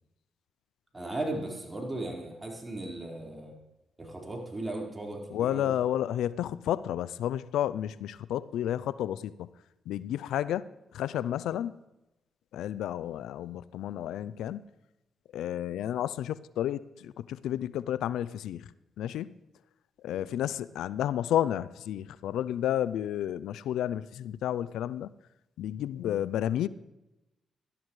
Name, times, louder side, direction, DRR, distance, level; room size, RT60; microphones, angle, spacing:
voice 1, 0.9-3.5 4.0-5.7 20.1-20.2, right 2 dB, 25° right, -1 dB, 4.4 m, -37 dB
voice 2, 5.3-9.5 9.9-10.6 10.9-11.8 12.5-14.6 15.3-19.3 20.0-25.1 25.6-26.7, left 11 dB, 85° left, 18 dB, 0.3 m, -31 dB
17.5 x 12.5 x 3.2 m, 0.96 s
supercardioid pair, 55°, 0 cm